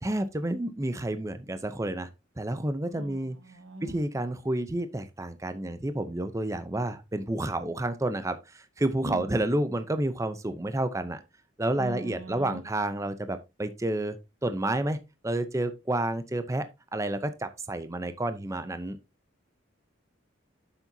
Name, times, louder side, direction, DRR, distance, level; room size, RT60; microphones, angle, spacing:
voice 1, 0.0-2.1 2.4-3.4 3.8-11.2 11.6-14.2 14.4-15.0 15.2-19.0, right 1 dB, 15° right, 0.5 m, -30 dB
voice 2, 2.9-4.0 9.0-9.3 11.8-12.6, equal, 80° right, 1.3 m, -41 dB
9.6 x 7.2 x 2.7 m
head